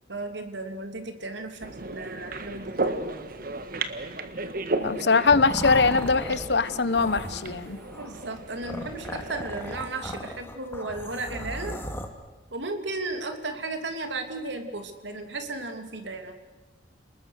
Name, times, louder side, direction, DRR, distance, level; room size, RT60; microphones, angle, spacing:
voice 1, 0.1-3.0 8.0-11.8 12.5-16.3, right 2 dB, 75° right, 6 dB, 3.0 m, -35 dB
sound 1, 1.6-9.9, right 2 dB, 55° right, 1.6 m, -35 dB
voice 2, 4.8-7.8, left 4 dB, 65° left, 15 dB, 1.0 m, -22 dB
sound 2, 4.8-12.1, left 1 dB, 15° left, 2.2 m, -37 dB
30.0 x 20.5 x 6.6 m, 1.2 s
head